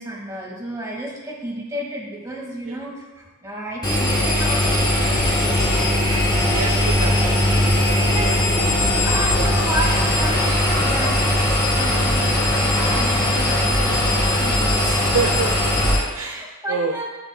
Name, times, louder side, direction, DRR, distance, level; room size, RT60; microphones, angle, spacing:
voice 1, 0.0-5.7 8.0-8.5 9.0-15.2 16.1-17.1, right 1 dB, 15° right, -4 dB, 1.8 m, -31 dB
Engine, 3.8-16.0, left 1 dB, 20° left, 1.8 m, -19 dB
voice 2, 6.5-7.4 7.7-8.4 9.4-9.5 15.1-16.4 16.7-17.0, right 4 dB, 75° right, 4 dB, 0.6 m, -27 dB
13.0 x 7.0 x 2.2 m, 1.2 s
head